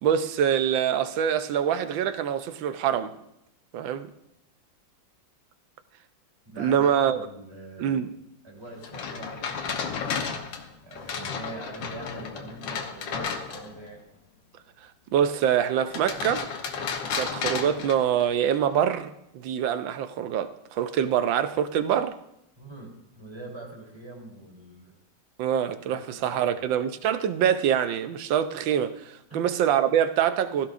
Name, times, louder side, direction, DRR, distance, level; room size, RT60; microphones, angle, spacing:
voice 1, 0.0-3.1 3.7-4.1 6.6-7.3 7.8-8.1 15.1-16.5 17.1-22.2 25.4-30.7, right 9 dB, 85° right, 1.5 m, -25 dB
voice 2, 6.4-8.0 8.4-10.0 10.8-14.0 22.6-24.9 25.9-26.0 26.3-26.7 29.3-29.5, right 2 dB, 15° right, 3.4 m, -43 dB
sound 1, 8.8-13.9 15.8-18.6, left 6 dB, 75° left, 1.7 m, -33 dB
15.5 x 15.0 x 2.5 m
omnidirectional pair, 2.0 m